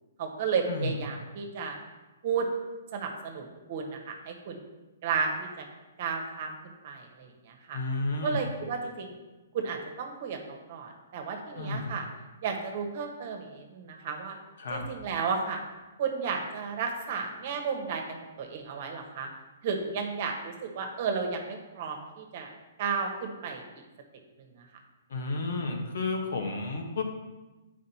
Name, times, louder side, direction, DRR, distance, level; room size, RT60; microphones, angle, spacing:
voice 1, 0.2-1.8 2.2-2.5 2.9-4.6 5.0-5.6 6.0-7.8 8.2-9.1 9.5-12.1 12.4-14.3 14.7-15.6 16.0-19.3 19.6-22.5 22.8-23.6 24.4-24.5, right 5 dB, 50° right, 3 dB, 1.3 m, -33 dB
voice 2, 7.7-8.4 11.6-11.9 14.6-14.9 25.1-27.0, left 3 dB, 70° left, 2 dB, 1.3 m, -31 dB
7.6 x 5.1 x 4.2 m, 1.1 s
hypercardioid pair, 135°, 0 cm